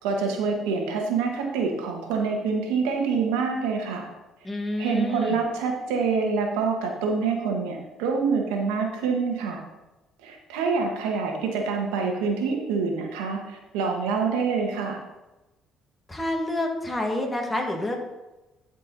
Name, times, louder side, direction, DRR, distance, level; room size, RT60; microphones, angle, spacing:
voice 1, 0.0-4.1 4.8-9.6 10.2-15.0, right 5 dB, 90° right, 1 dB, 1.6 m, -26 dB
voice 2, 4.4-5.4 16.1-18.0, left 1 dB, 20° left, 2 dB, 2.1 m, -28 dB
12.5 x 4.7 x 4.1 m, 1.0 s
supercardioid pair, 70°, 0 cm